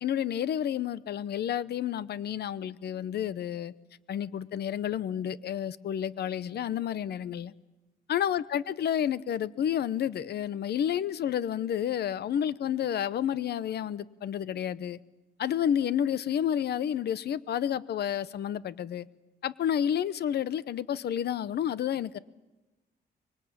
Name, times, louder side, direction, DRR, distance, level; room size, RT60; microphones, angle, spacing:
voice 1, 0.0-3.7 4.1-7.5 8.1-15.0 15.4-19.1 19.4-22.2, left 9 dB, 70° left, 0.9 m, -30 dB
25.0 x 23.0 x 8.7 m
wide cardioid pair, 175°, 18 cm